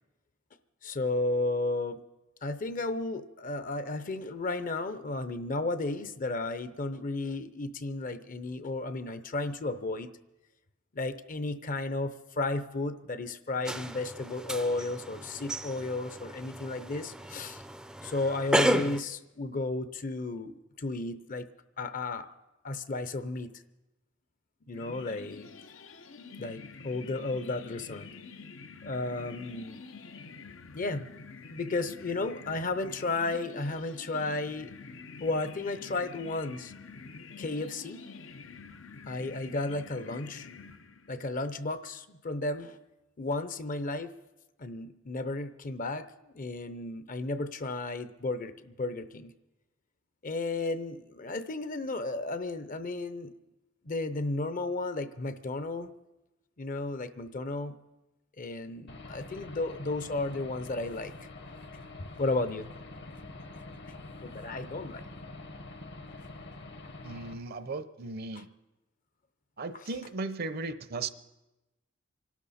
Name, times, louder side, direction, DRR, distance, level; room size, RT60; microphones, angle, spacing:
voice 1, 0.8-2.0 2.4-10.1 10.9-17.6 18.0-21.5 21.8-22.3 22.6-23.5 24.7-25.5 26.4-28.1 28.8-29.8 30.7-31.1 31.5-34.7 35.2-36.7 37.4-38.0 39.1-40.5 41.1-42.8 43.2-44.1 44.6-46.1 46.4-49.3 50.2-53.3 53.8-55.9 56.6-57.8 58.4-61.1 62.0-62.7 64.2-65.0 69.7-69.8, left 2 dB, 45° left, 12 dB, 0.7 m, -33 dB
sound 1, 13.7-19.0, right 1 dB, 5° right, 0.4 m, -33 dB
sound 2, 24.7-41.3, left 4 dB, 85° left, 0.8 m, -47 dB
Aircraft / Engine, 58.9-67.3, left 2 dB, 60° left, 1.3 m, -46 dB
voice 2, 67.0-68.5 69.6-71.1, right 3 dB, 50° right, 12 dB, 0.7 m, -36 dB
26.5 x 12.0 x 4.2 m, 1.0 s
head